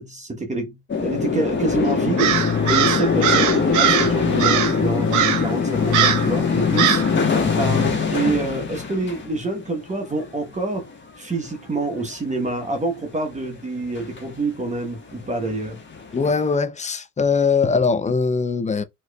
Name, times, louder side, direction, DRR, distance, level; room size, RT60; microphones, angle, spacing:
voice 1, 0.0-7.0 7.5-10.9 11.2-15.8, right 2 dB, 25° right, 1.0 m, -27 dB
sound 1, 0.9-10.4 10.7-11.0 11.3-11.6 11.8-12.6 13.3-13.5 13.8-14.4 14.8-14.9 15.1-16.4, left 5 dB, 40° left, 1.3 m, -24 dB
Crow, 2.2-4.1 4.4-4.8 5.1-5.5 5.9-6.3 6.8-7.1, right 9 dB, 80° right, 0.8 m, -20 dB
sound 2, 2.3-7.9, left 6 dB, 70° left, 1.6 m, -26 dB
voice 2, 16.1-18.8, left 5 dB, 25° left, 0.5 m, -21 dB
4.3 x 3.0 x 2.3 m
cardioid pair, 90°, 30 cm